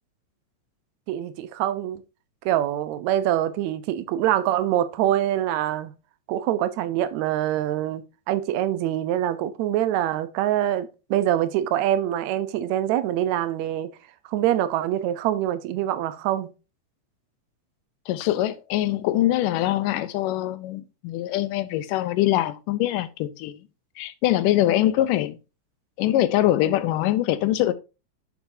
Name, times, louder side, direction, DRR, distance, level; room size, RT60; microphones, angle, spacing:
voice 1, 1.1-2.0 2.5-5.9 6.3-13.9 14.3-16.5, right 12 dB, 70° right, 1.9 m, -24 dB
voice 2, 18.1-23.6 24.0-25.4 26.0-27.7, left 14 dB, 80° left, 2.3 m, -23 dB
9.4 x 7.2 x 2.7 m
omnidirectional pair, 3.8 m